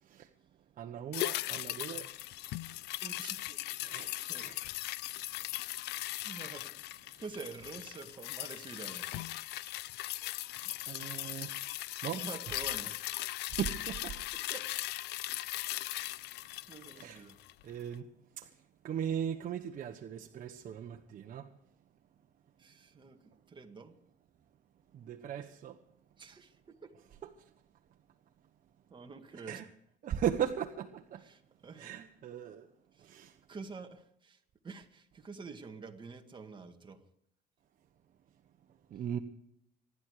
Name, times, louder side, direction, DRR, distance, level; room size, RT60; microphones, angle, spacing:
voice 1, 0.8-2.1 3.8-4.6 10.9-11.5 12.0-12.2 13.5-14.2 16.9-17.2 17.6-18.6 18.8-21.5 24.9-25.8 27.2-27.5 29.5-29.6 30.0-31.3 31.8-32.7 33.0-33.4 38.9-39.2, right 9 dB, 55° right, 1.3 m, -38 dB
sound 1, 1.1-17.6 17.9-18.0, left 17 dB, 85° left, 0.6 m, -39 dB
voice 2, 3.0-3.6 4.2-4.5 5.2-5.3 6.2-9.3 12.1-13.1 14.3-14.7 15.7-16.2 16.7-17.4 22.6-24.0 26.2-26.9 28.9-29.6 31.2-31.9 32.9-33.1 33.5-37.0, right 4 dB, 30° right, 2.1 m, -48 dB
25.5 x 11.5 x 5.0 m
cardioid pair, 110°, 17 cm